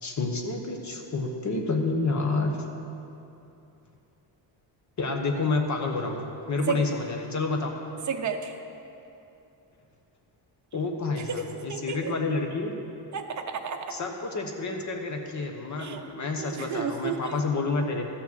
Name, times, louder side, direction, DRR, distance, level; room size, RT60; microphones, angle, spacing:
voice 1, 0.0-2.6 5.0-7.7 10.7-12.7 13.9-18.1, left 3 dB, 40° left, 3 dB, 1.1 m, -29 dB
voice 2, 8.1-8.5 11.3-11.4 11.7-12.1 13.1-13.9 15.8-16.0 16.4-17.4, right 6 dB, 40° right, 4 dB, 0.8 m, -32 dB
13.5 x 6.2 x 7.4 m, 2.8 s
wide cardioid pair, 170°, 46 cm